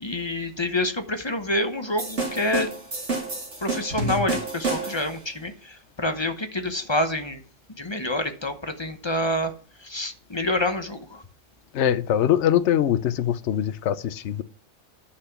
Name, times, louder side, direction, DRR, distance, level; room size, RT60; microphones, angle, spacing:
voice 1, 0.0-2.7 3.6-7.4 7.8-9.5 9.8-11.2, left 1 dB, 25° left, 0.8 m, -27 dB
sound 1, 2.0-5.2, right 2 dB, 65° right, 2.9 m, -29 dB
voice 2, 11.7-14.4, left 10 dB, 70° left, 1.0 m, -22 dB
10.0 x 5.9 x 5.8 m
omnidirectional pair, 1.3 m